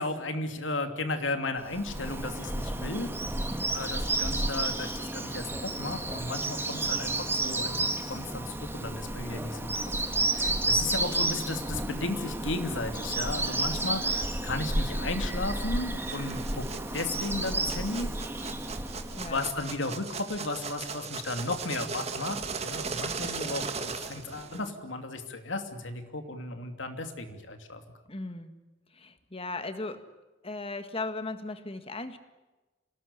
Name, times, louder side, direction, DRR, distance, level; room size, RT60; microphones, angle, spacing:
voice 1, 0.0-3.1 3.7-9.7 10.1-16.7 16.9-18.1 19.2-27.8, left 2 dB, 80° left, 6 dB, 2.8 m, -34 dB
Bird vocalization bird call bird song, 1.7-19.7, right 2 dB, 10° right, 1.9 m, -31 dB
sound 1, 16.0-24.7, right 5 dB, 35° right, 2.0 m, -38 dB
voice 2, 28.1-28.5 28.9-30.0 30.4-32.2, left 3 dB, 30° left, 9 dB, 1.8 m, -37 dB
27.5 x 19.0 x 10.0 m, 1.1 s
head